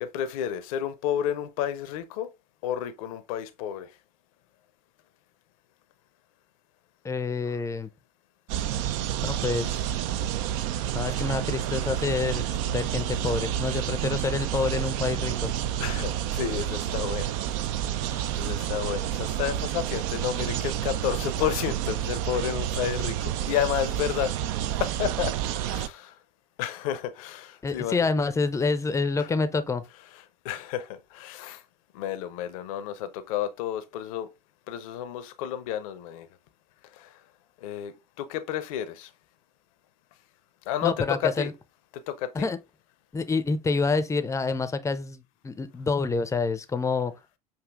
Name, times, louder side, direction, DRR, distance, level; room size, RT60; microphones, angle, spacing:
voice 1, 0.0-2.3 2.6-3.9 15.8-17.4 17.9-24.3 24.8-25.3 25.7-26.2 26.6-28.0 29.2-29.3 30.4-31.6 31.9-34.3 34.7-36.3 36.9-37.1 37.6-39.1 40.7-40.9 41.2-41.5 42.1-42.5, left 10 dB, 60° left, 0.6 m, -31 dB
voice 2, 7.0-7.9 9.2-10.0 10.9-15.5 27.6-29.8 40.8-41.5 42.3-42.6 43.1-47.1, left 4 dB, 15° left, 0.5 m, -27 dB
sound 1, 8.5-25.9, right 11 dB, 55° right, 0.4 m, -29 dB
6.9 x 2.7 x 2.4 m
figure-of-eight pair, 70°, 20 cm